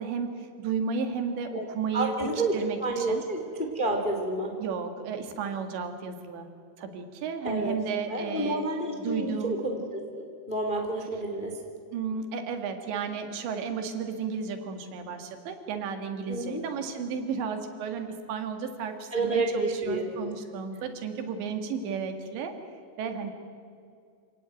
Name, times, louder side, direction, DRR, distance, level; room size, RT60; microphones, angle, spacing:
voice 1, 0.0-2.1 2.5-3.2 4.6-6.5 6.8-8.7 9.0-9.6 11.9-22.5 23.0-23.3, right 6 dB, 85° right, 6 dB, 4.2 m, -33 dB
voice 2, 1.9-4.5 7.4-7.7 8.1-11.6 16.3-16.6 19.1-20.3, right 2 dB, 20° left, 3 dB, 1.4 m, -29 dB
27.0 x 17.5 x 9.2 m, 2.2 s
omnidirectional pair, 5.0 m